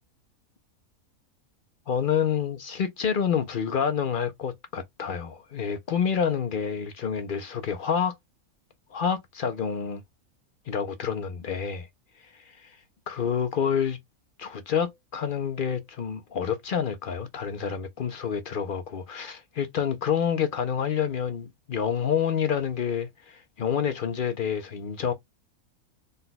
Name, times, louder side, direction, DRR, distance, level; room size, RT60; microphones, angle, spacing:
voice 1, 1.9-8.1 8.9-10.0 10.7-11.9 12.2-12.8 13.1-14.0 14.4-25.1, left 7 dB, 65° left, 0.5 m, -28 dB
4.0 x 2.2 x 3.9 m
omnidirectional pair, 1.5 m